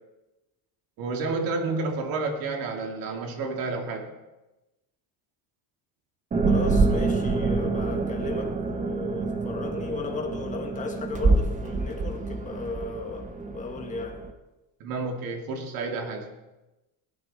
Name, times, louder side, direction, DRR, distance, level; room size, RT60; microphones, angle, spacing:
voice 1, 1.0-4.1 14.8-16.3, right 3 dB, 60° right, 2.4 m, -30 dB
sound 1, 6.3-14.3, right 3 dB, 20° right, 0.8 m, -26 dB
voice 2, 6.5-14.3, left 4 dB, 20° left, 1.7 m, -35 dB
17.5 x 11.5 x 4.3 m
cardioid pair, 165°, 40 cm